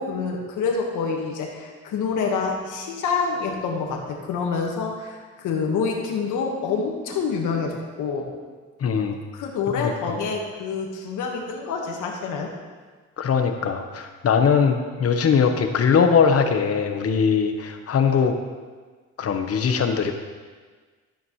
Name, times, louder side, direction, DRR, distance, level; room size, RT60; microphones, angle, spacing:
voice 1, 0.0-8.3 9.3-12.5, left 5 dB, 85° left, 1 dB, 1.6 m, -27 dB
voice 2, 8.8-9.2 9.8-10.2 13.2-18.4 19.2-20.1, left 6 dB, 50° left, 6 dB, 1.1 m, -21 dB
13.0 x 8.6 x 3.1 m, 1.5 s
cardioid pair, 90°, 30 cm